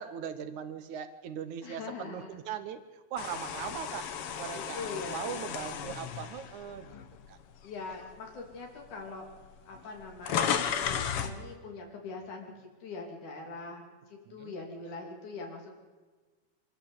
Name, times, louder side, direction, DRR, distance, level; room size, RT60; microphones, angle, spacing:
voice 1, 0.0-4.1 4.4-6.9 7.3-7.4 14.3-14.5, right 8 dB, 80° right, 9 dB, 2.6 m, -40 dB
voice 2, 1.6-2.4 4.5-5.4 7.6-9.3 9.7-15.7, left 4 dB, 80° left, 1 dB, 4.6 m, -42 dB
sound 1, 3.2-7.4 7.9-8.1 9.0-9.1 9.3-11.4, left 8 dB, 60° left, 1.8 m, -34 dB
25.0 x 13.5 x 8.1 m, 1.4 s
omnidirectional pair, 3.4 m